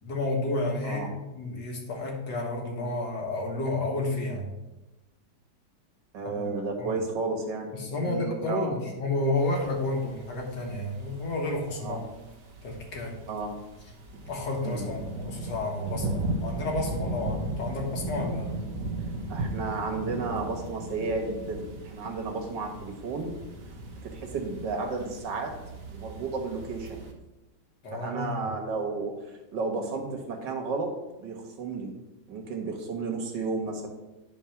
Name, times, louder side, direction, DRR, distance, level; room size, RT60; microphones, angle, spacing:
voice 1, 0.0-4.5 6.2-6.5 6.8-7.0 7.7-12.1 12.6-13.2 14.3-18.6 27.8-28.4, left 2 dB, 75° left, 1 dB, 2.2 m, -31 dB
voice 2, 6.1-8.7 11.8-12.0 13.3-13.6 14.6-14.9 18.6-18.7 19.3-23.3 24.0-25.6 25.9-27.1 27.9-31.9 32.3-33.9, right 3 dB, 85° right, 3 dB, 2.1 m, -33 dB
sound 1, 9.4-27.1, right 2 dB, 55° right, 1.6 m, -37 dB
11.0 x 4.2 x 5.9 m, 1.0 s
omnidirectional pair, 1.9 m